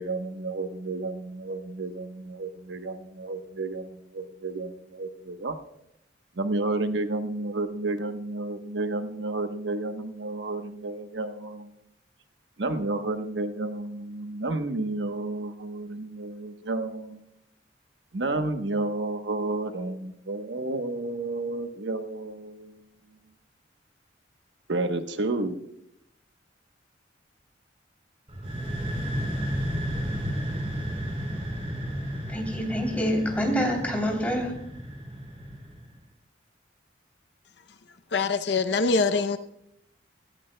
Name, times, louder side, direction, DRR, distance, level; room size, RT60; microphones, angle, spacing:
voice 1, 0.0-5.6 6.3-11.7 12.6-17.2 18.1-22.8 24.7-25.7, right 2 dB, 85° right, 1.0 m, -31 dB
sound 1, 28.3-35.9, equal, 35° right, 2.9 m, -32 dB
voice 2, 32.3-34.5, equal, 10° left, 3.1 m, -26 dB
voice 3, 38.1-39.4, left 4 dB, 70° left, 0.6 m, -24 dB
17.0 x 14.0 x 2.2 m
head